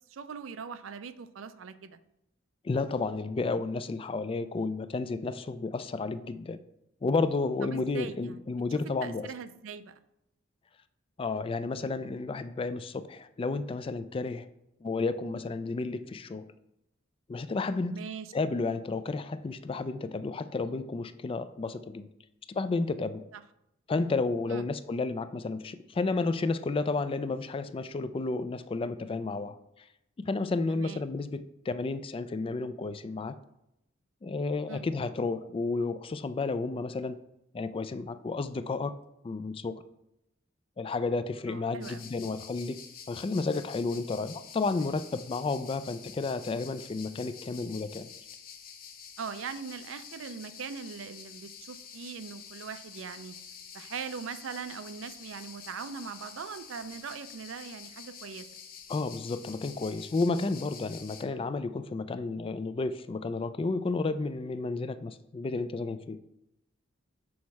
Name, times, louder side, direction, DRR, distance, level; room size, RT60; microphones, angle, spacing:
voice 1, 0.1-2.0 7.6-8.4 9.0-10.0 17.9-18.3 23.3-23.4 24.5-24.7 30.7-31.0 34.7-34.9 41.5-42.0 43.5-43.7 49.2-53.4 53.7-58.5 61.3-61.5, right 6 dB, 80° right, 12 dB, 0.4 m, -41 dB
voice 2, 2.6-6.6 7.0-9.3 11.2-14.5 14.8-16.5 17.3-18.0 18.3-22.1 22.5-23.3 23.9-29.6 30.2-33.4 34.2-37.2 37.5-39.8 40.8-48.1 58.9-66.2, left 3 dB, 25° left, 12 dB, 0.3 m, -32 dB
sound 1, 41.8-61.2, left 7 dB, 45° left, 0.7 m, -48 dB
6.2 x 4.2 x 4.7 m, 0.84 s
head